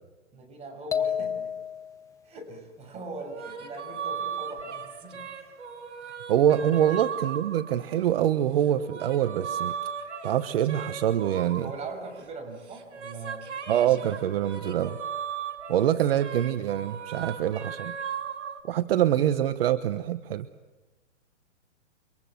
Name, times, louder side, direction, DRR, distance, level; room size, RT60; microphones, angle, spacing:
voice 1, 0.3-1.6 2.2-5.6 11.6-13.6, right 3 dB, 15° right, 4 dB, 6.9 m, -41 dB
sound 1, 0.9-2.1, left 8 dB, 10° left, 0.9 m, -30 dB
sound 2, 3.2-8.1 8.6-12.4 12.7-18.6, right 7 dB, 65° right, 5.9 m, -37 dB
voice 2, 6.3-9.8 10.2-11.7 13.7-15.0 15.7-18.0 18.7-20.5, right 11 dB, 50° right, 11 dB, 1.2 m, -25 dB
30.0 x 26.0 x 7.7 m, 1.2 s
hypercardioid pair, 145°, 37 cm